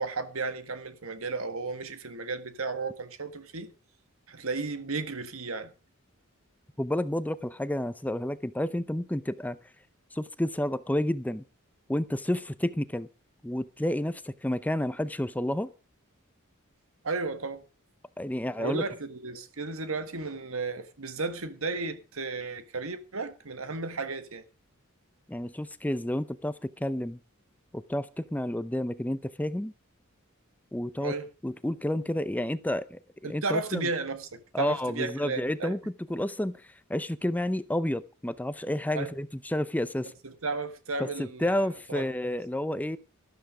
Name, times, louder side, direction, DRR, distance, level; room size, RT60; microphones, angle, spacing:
voice 1, 0.0-3.7 4.3-5.7 17.0-17.6 18.6-24.4 31.0-31.3 33.2-35.7 38.9-39.1 40.2-42.1, right 3 dB, 70° right, 1.7 m, -34 dB
voice 2, 6.8-9.6 10.1-11.4 11.9-13.1 13.4-15.7 18.2-18.8 25.3-27.2 27.7-29.7 30.7-31.1 31.4-33.9 34.5-35.8 36.1-40.1 41.0-43.0, left 1 dB, 10° left, 0.6 m, -30 dB
13.0 x 12.5 x 5.0 m
head